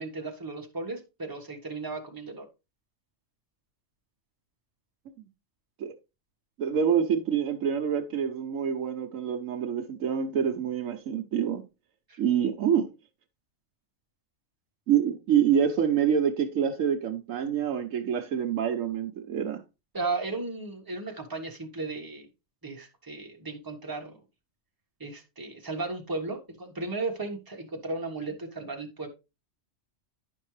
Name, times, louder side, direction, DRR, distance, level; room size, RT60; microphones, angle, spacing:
voice 1, 0.0-2.5 12.1-12.2 19.9-22.3 22.6-24.2 25.0-29.1, right 3 dB, 15° right, 1.3 m, -35 dB
voice 2, 6.6-11.6 12.2-12.9 14.9-19.6, right 8 dB, 80° right, 1.2 m, -26 dB
10.5 x 5.3 x 3.1 m
omnidirectional pair, 1.4 m